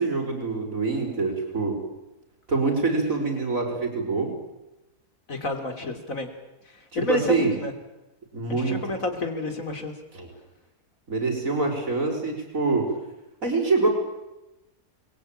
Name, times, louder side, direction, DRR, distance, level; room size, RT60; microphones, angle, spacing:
voice 1, 0.0-1.8 2.5-4.3 6.9-7.6 8.3-8.8 10.1-10.3 11.1-12.9 13.4-13.9, right 3 dB, 55° right, 3 dB, 5.7 m, -25 dB
voice 2, 5.3-6.3 6.9-7.7 8.6-9.9, left 2 dB, 55° left, 6 dB, 3.7 m, -29 dB
29.0 x 22.0 x 8.9 m, 0.99 s
omnidirectional pair, 1.6 m